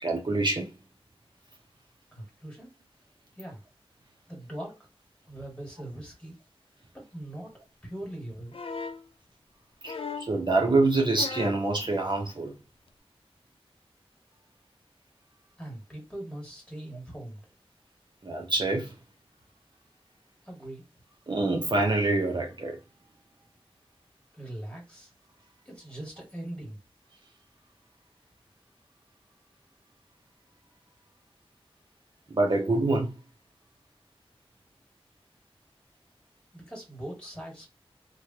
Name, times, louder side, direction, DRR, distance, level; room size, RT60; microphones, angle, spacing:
voice 1, 0.0-0.7 9.8-12.6 18.2-18.9 21.3-22.8 32.3-33.1, right 2 dB, 50° right, 0.6 m, -26 dB
voice 2, 2.1-2.7 3.3-3.6 4.3-4.7 5.3-6.3 6.9-7.5 7.8-8.6 15.6-17.4 20.5-20.8 24.3-25.1 25.7-26.8 36.5-37.7, right 1 dB, 10° left, 1.7 m, -41 dB
sound 1, 8.5-9.1 9.8-10.4 11.1-11.7 12.9-13.0, left 4 dB, 65° left, 0.4 m, -37 dB
3.1 x 2.2 x 2.7 m
wide cardioid pair, 70°, 10 cm